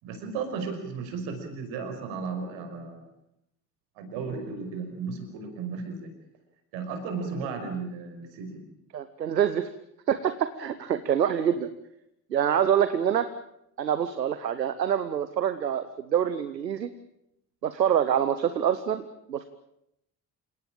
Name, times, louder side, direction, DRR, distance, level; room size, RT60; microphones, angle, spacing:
voice 1, 0.0-3.1 4.0-6.1 6.7-8.6, right 5 dB, 65° right, 7 dB, 5.7 m, -34 dB
voice 2, 8.9-9.7 10.1-11.7 12.3-13.3 13.8-16.9 17.6-19.4, right 9 dB, 85° right, 12 dB, 1.0 m, -26 dB
28.0 x 18.0 x 8.8 m, 0.81 s
figure-of-eight pair, 45°, 49 cm